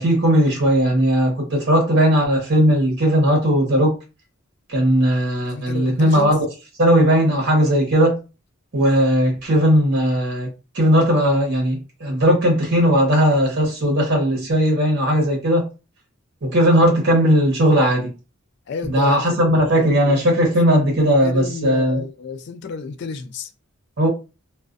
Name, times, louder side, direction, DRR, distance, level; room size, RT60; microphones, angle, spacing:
voice 1, 0.0-4.0 4.7-6.5 6.8-8.2 8.7-10.5 10.7-15.7 16.4-18.1 18.9-22.0 24.0-24.1, equal, 50° right, 0.9 m, -17 dB
voice 2, 5.5-6.3 18.7-19.9 21.2-23.5, left 5 dB, 50° left, 0.3 m, -31 dB
2.4 x 2.1 x 2.4 m
head